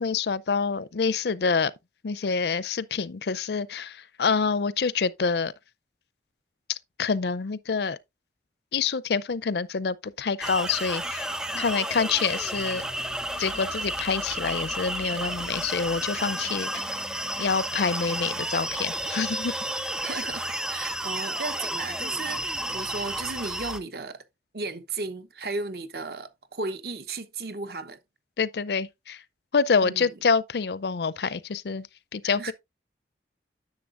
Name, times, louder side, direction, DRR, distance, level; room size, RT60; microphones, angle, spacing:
voice 1, 0.0-1.7 2.0-5.5 6.7-8.0 8.7-12.8 13.4-16.9 17.4-19.5 28.4-29.2 29.5-32.5, left 5 dB, 65° left, 0.5 m, -27 dB
sound 1, 10.4-23.8, right 1 dB, 5° right, 0.5 m, -32 dB
voice 2, 20.0-24.2 24.5-28.0 29.8-30.1 32.2-32.5, right 3 dB, 60° right, 1.0 m, -35 dB
10.5 x 6.9 x 2.5 m
head